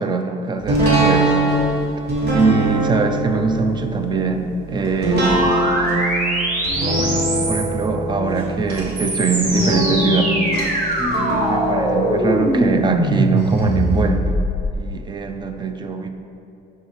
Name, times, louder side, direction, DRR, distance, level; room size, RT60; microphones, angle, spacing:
voice 1, 0.0-1.4 2.3-5.5 6.9-10.4 11.4-14.4 14.8-16.1, right 4 dB, 25° right, 7 dB, 0.4 m, -22 dB
sound 1, 0.7-13.6 14.0-14.1, right 1 dB, 75° right, 1.4 m, -22 dB
sound 2, 5.2-7.9 8.7-14.7, right 1 dB, 55° right, 1.1 m, -22 dB
5.8 x 5.5 x 3.1 m, 2.7 s
cardioid pair, 110°, 17 cm